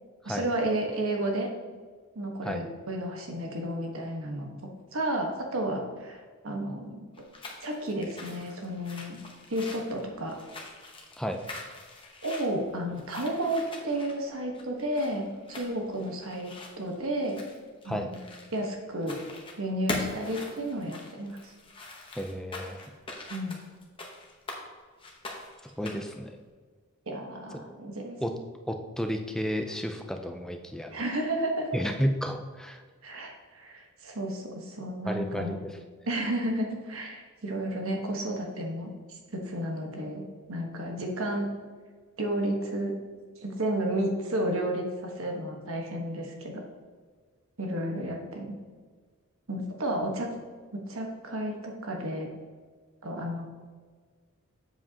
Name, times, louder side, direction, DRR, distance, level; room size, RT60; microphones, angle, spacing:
voice 1, 0.2-1.5 2.1-4.5 4.9-7.1 7.6-9.2 9.5-10.3 12.2-16.5 16.8-17.4 17.8-18.2 18.5-19.2 19.6-21.4 23.3-23.6 25.8-25.9 27.1-28.2 30.9-31.7 33.0-35.5 36.1-41.5 42.2-42.9 43.4-44.8 45.2-46.6 47.6-48.5 49.5-50.3 50.7-52.3 53.0-53.5, right 1 dB, 70° right, 1 dB, 1.3 m, -32 dB
sound 1, 7.1-18.7 19.0-19.6 19.9-24.6 25.0-26.2, left 2 dB, 25° left, 0.9 m, -42 dB
voice 2, 22.2-22.8 25.6-26.4 27.5-27.7 28.2-28.4 28.7-30.9 31.7-32.8 35.1-35.8, equal, 5° left, 5 dB, 0.4 m, -32 dB
7.7 x 7.4 x 2.9 m, 1.5 s
head